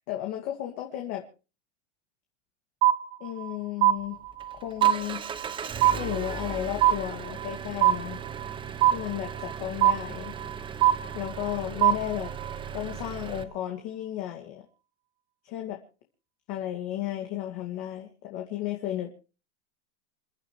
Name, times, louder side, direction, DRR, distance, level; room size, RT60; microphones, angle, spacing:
voice 1, 0.1-1.2 3.2-4.2 4.5-5.2 5.9-8.2 8.9-10.3 11.1-12.3 12.7-14.6 15.4-15.8 16.5-19.1, left 13 dB, 40° left, 2 dB, 2.4 m, -33 dB
sound 1, 2.8-3.5 3.8-4.5 4.8-5.5 5.8-6.5 6.8-7.5 7.8-8.5 8.8-9.5 9.8-10.5 10.8-11.5 11.8-12.5, right 13 dB, 55° right, 1.3 m, -22 dB
Engine, 3.9-13.4, right 7 dB, 15° right, 0.8 m, -38 dB
28.5 x 11.5 x 3.2 m, 0.35 s
supercardioid pair, 160°, 35 cm